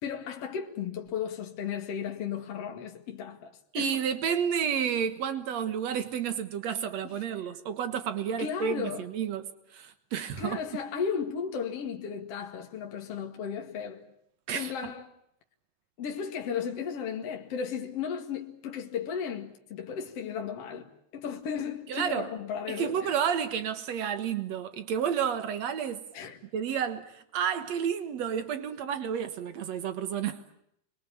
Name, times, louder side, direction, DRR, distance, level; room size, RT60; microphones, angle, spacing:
voice 1, 0.0-4.0 7.0-7.1 8.4-9.1 10.4-14.1 14.5-15.1 16.0-23.1 26.1-26.4, left 7 dB, 45° left, 2.2 m, -35 dB
voice 2, 3.7-9.4 9.7-10.6 14.5-14.7 21.9-22.3 22.7-26.0 26.5-30.6, right 8 dB, 75° right, 1.5 m, -31 dB
29.5 x 23.0 x 8.6 m
omnidirectional pair, 5.3 m